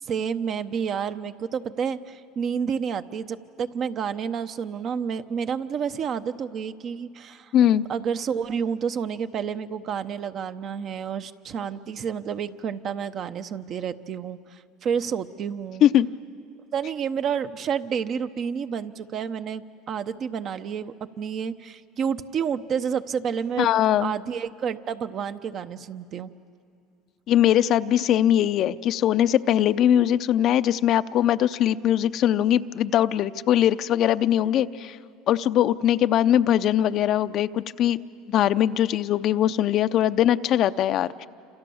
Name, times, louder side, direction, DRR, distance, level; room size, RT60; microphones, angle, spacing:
voice 1, 0.0-7.5 7.9-15.9 16.7-23.7 24.0-26.3, right 7 dB, 45° right, 10 dB, 0.8 m, -30 dB
voice 2, 7.5-7.9 15.8-16.1 23.6-24.1 27.3-35.0 35.3-38.0 38.3-41.3, left 11 dB, 50° left, 12 dB, 0.6 m, -21 dB
28.0 x 27.0 x 7.1 m, 2.4 s
supercardioid pair, 105°, 0 cm